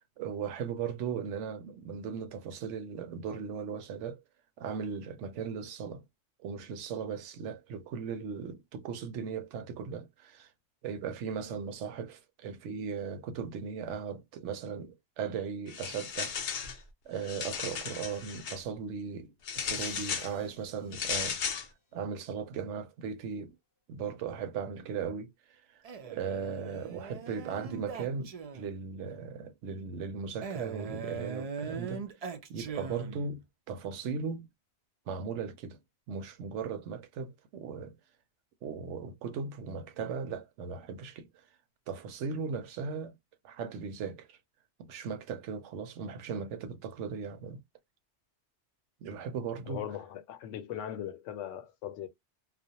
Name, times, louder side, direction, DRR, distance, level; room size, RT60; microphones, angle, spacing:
voice 1, 0.0-4.2 4.6-6.0 6.4-10.5 10.8-23.6 23.9-32.1 32.5-34.5 35.1-35.8 36.1-38.0 38.6-41.5 41.9-43.2 43.4-44.4 44.8-47.6 49.0-49.8, right 6 dB, 80° right, 0.9 m, -38 dB
sound 1, 15.7-16.8 17.2-18.6 19.5-20.3 20.9-21.7, left 6 dB, 60° left, 0.5 m, -35 dB
Crash cymbal, 19.6-21.4, left 2 dB, 20° left, 0.8 m, -55 dB
Male speech man speaking, 25.8-28.9 30.4-33.4, right 6 dB, 60° right, 0.4 m, -41 dB
voice 2, 49.7-52.1, left 10 dB, 90° left, 0.9 m, -39 dB
2.4 x 2.0 x 2.7 m
omnidirectional pair, 1.2 m